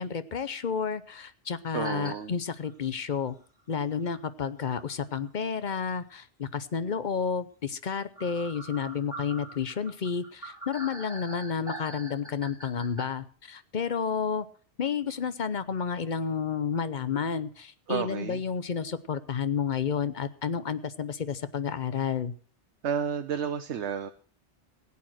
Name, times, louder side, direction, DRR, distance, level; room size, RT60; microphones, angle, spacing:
voice 1, 0.0-3.3 3.7-14.5 14.8-22.3, left 6 dB, 45° left, 14 dB, 0.8 m, -31 dB
voice 2, 1.7-2.3 17.9-18.4 22.8-24.1, right 8 dB, 80° right, 7 dB, 1.1 m, -31 dB
sound 1, 1.8-2.1 2.6-2.7 4.1-4.2 4.9-5.0 5.3-5.4 8.2-13.1, right 1 dB, 5° right, 3.8 m, -42 dB
16.0 x 8.6 x 6.2 m, 0.44 s
omnidirectional pair, 1.2 m